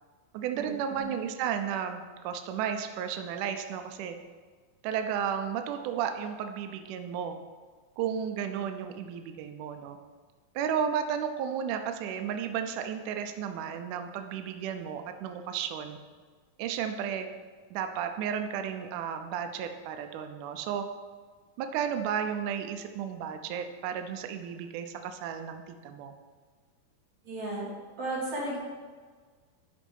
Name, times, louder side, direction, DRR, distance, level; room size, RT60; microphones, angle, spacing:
voice 1, 0.3-4.2 4.8-7.4 8.0-10.0 10.6-16.0 16.6-17.3 17.7-20.9 21.6-26.1, right 8 dB, 80° right, 6 dB, 1.8 m, -33 dB
voice 2, 27.3-27.7 28.0-28.6, right 2 dB, 50° right, -8 dB, 4.0 m, -33 dB
12.0 x 4.2 x 5.4 m, 1.5 s
omnidirectional pair, 4.3 m